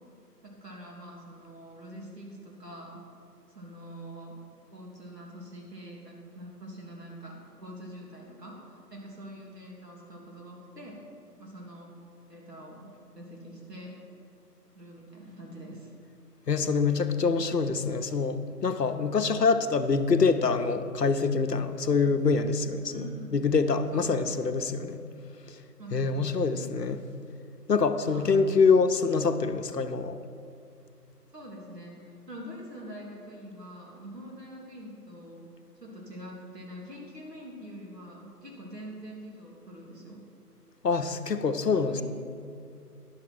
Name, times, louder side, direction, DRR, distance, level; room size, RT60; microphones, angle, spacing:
voice 1, 0.4-3.0 3.5-4.3 4.7-11.0 11.4-11.9 12.3-14.0 14.7-15.9 22.9-23.3 23.9-24.4 25.8-26.7 28.0-28.4 31.3-35.5 35.8-40.2 41.6-42.0, equal, 80° right, -2 dB, 2.9 m, -45 dB
voice 2, 16.5-23.0 23.3-25.0 25.9-27.0 27.7-30.2 40.8-42.0, left 4 dB, 80° left, 8 dB, 0.9 m, -25 dB
10.5 x 6.5 x 6.2 m, 2.4 s
figure-of-eight pair, 165°, 48 cm